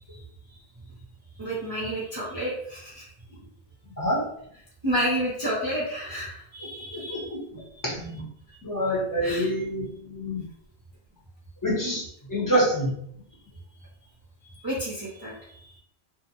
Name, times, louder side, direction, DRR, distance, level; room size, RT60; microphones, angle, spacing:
voice 1, 1.4-3.0 4.8-7.3 7.7-7.8 9.2-9.5 14.6-15.7, equal, 25° right, -8 dB, 0.6 m, -30 dB
voice 2, 4.0-4.3 6.9-8.3 8.6-10.4 11.6-12.9, equal, 20° left, -6 dB, 0.8 m, -27 dB
2.5 x 2.1 x 2.9 m, 0.70 s
omnidirectional pair, 1.1 m